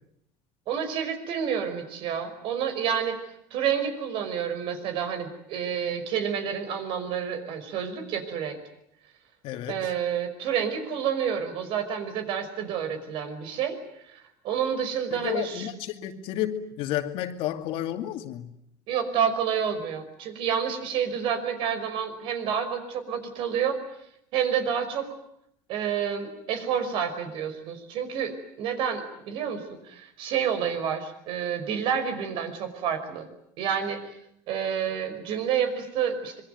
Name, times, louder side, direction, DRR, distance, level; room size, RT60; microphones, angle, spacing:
voice 1, 0.7-8.6 9.7-15.7 18.9-23.8 24.3-25.1 25.7-33.3 33.6-34.1 34.5-36.4, right 8 dB, 55° right, 5.4 m, -29 dB
voice 2, 9.4-9.9 15.1-18.5, left 12 dB, 60° left, 2.5 m, -31 dB
26.0 x 23.5 x 9.4 m
cardioid pair, 140°, 10 cm